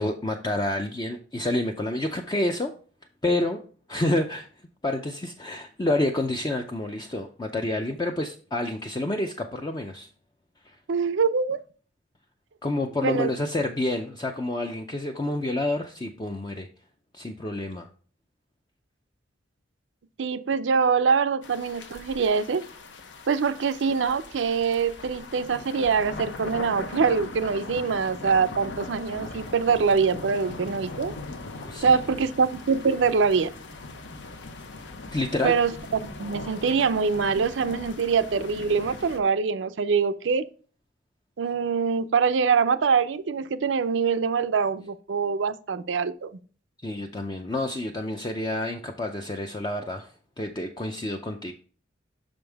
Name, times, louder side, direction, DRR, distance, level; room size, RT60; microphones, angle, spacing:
voice 1, 0.0-2.7 3.2-3.6 3.9-4.5 4.8-10.1 12.6-16.7 17.1-17.9 31.6-32.0 35.1-35.5 46.8-50.1 50.4-51.5, left 1 dB, 20° left, 0.5 m, -28 dB
voice 2, 10.9-11.6 13.0-13.3 20.2-22.7 23.3-31.1 31.8-33.5 35.4-40.5 41.4-46.4, right 5 dB, 80° right, 0.5 m, -24 dB
sound 1, 21.4-39.2, left 3 dB, 70° left, 0.8 m, -40 dB
6.2 x 5.2 x 3.4 m
head